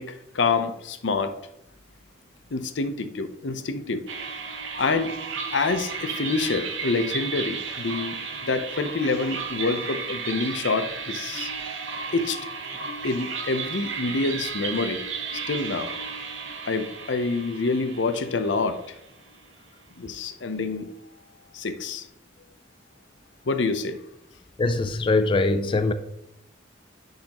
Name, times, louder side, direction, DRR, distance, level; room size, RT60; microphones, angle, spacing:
voice 1, 0.0-1.3 2.5-4.0 4.8-5.2 5.5-11.5 12.1-12.4 12.7-12.8 13.0-15.0 15.3-15.9 16.6-19.0 20.0-20.9 21.5-22.1 23.5-24.0, left 3 dB, 70° left, 9 dB, 0.7 m, -27 dB
sound 1, 4.1-19.3, right 5 dB, 85° right, 1.0 m, -34 dB
voice 2, 24.6-25.9, left 3 dB, 25° left, 10 dB, 0.3 m, -22 dB
10.5 x 4.0 x 3.0 m, 0.82 s
head